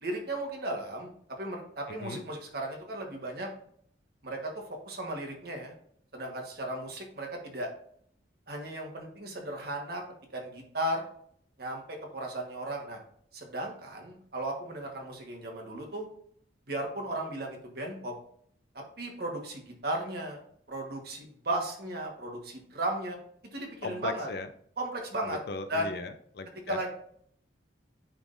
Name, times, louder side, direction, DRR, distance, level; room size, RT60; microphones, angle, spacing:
voice 1, 0.0-3.5 4.2-5.7 6.1-7.7 8.5-10.0 10.3-11.1 11.6-13.0 13.3-16.1 16.7-18.1 18.7-20.4 20.7-23.2 23.5-24.3 24.8-25.4 25.7-25.9 26.7-26.9, right 1 dB, 55° right, 1 dB, 1.3 m, -35 dB
voice 2, 23.8-24.5 25.3-26.8, left 3 dB, 60° left, 9 dB, 0.5 m, -38 dB
10.0 x 3.7 x 2.6 m, 0.64 s
head